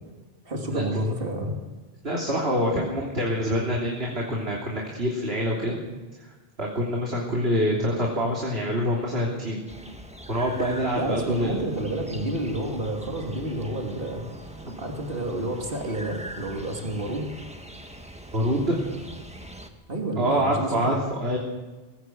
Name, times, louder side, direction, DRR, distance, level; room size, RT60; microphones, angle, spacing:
voice 1, 0.4-1.5 10.9-17.3 19.9-21.0, right 1 dB, 65° right, 1 dB, 3.1 m, -30 dB
voice 2, 2.0-5.8 6.2-6.3 6.6-9.6 10.3-11.5 18.3-18.8 20.1-21.4, equal, 80° right, -2 dB, 3.5 m, -26 dB
sound 1, 9.7-19.7, right 1 dB, 5° right, 1.7 m, -42 dB
20.0 x 17.5 x 7.9 m, 1.2 s
omnidirectional pair, 1.0 m